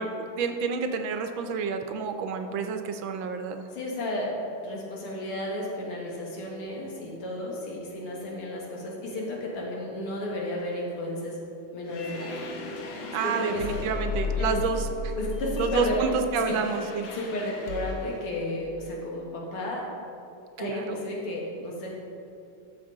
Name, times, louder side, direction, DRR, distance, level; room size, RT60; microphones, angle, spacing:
voice 1, 0.0-3.7 13.1-15.1 15.6-17.1 20.6-21.0, right 5 dB, 75° right, 6 dB, 1.3 m, -29 dB
voice 2, 3.7-11.4 11.7-12.4 13.2-13.8 14.4-14.6 15.2-16.0 16.5-16.6 17.1-19.9 20.6-21.9, left 1 dB, 85° left, -2 dB, 2.5 m, -33 dB
sound 1, 11.8-18.3, left 2 dB, 65° left, 1.7 m, -34 dB
12.5 x 6.6 x 3.8 m, 2.6 s
omnidirectional pair, 2.4 m